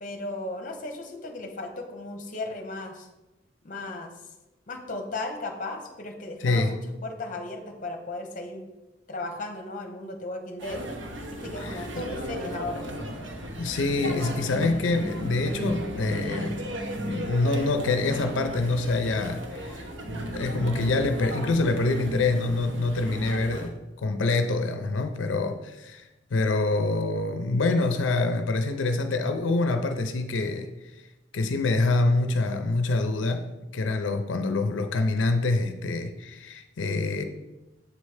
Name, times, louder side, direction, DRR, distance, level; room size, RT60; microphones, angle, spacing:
voice 1, 0.0-3.1 3.6-4.1 4.7-8.7 9.1-10.8 11.3-12.9, left 2 dB, 45° left, 4 dB, 0.8 m, -35 dB
voice 2, 6.4-6.8 11.6-11.9 13.5-16.6 17.0-19.9 20.1-30.7 31.3-37.2, left 3 dB, 90° left, 7 dB, 0.5 m, -26 dB
sound 1, 10.6-23.7, right 1 dB, 80° right, 0.8 m, -35 dB
7.4 x 3.2 x 4.8 m, 1.0 s
head